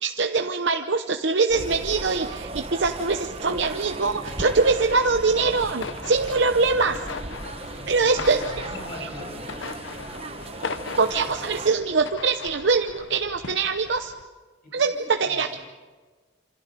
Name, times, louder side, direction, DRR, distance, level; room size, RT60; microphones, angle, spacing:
voice 1, 0.0-7.0 7.9-8.4 11.0-14.1 14.7-15.6, right 4 dB, 70° right, 6 dB, 0.8 m, -23 dB
sound 1, 1.5-11.7, right 2 dB, 30° right, 0.9 m, -37 dB
sound 2, 4.2-14.2, left 4 dB, 80° left, 0.8 m, -39 dB
voice 2, 8.0-9.8 14.6-15.6, left 1 dB, 50° left, -2 dB, 7.8 m, -41 dB
27.5 x 26.0 x 5.2 m, 1.4 s
head